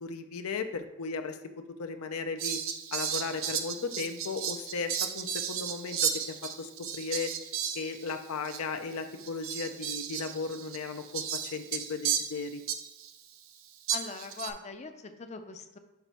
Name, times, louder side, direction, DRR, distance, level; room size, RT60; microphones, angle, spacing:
voice 1, 0.0-1.4 1.8-2.6 2.9-6.1 6.6-7.3 7.7-12.6, left 4 dB, 85° left, 7 dB, 0.5 m, -36 dB
Fowl, 2.4-8.2 8.4-8.6 9.2-13.1 13.9-14.5, right 8 dB, 65° right, 0.5 m, -34 dB
voice 2, 13.9-15.8, left 4 dB, 30° left, 7 dB, 0.4 m, -41 dB
5.8 x 3.0 x 5.5 m, 1.0 s
head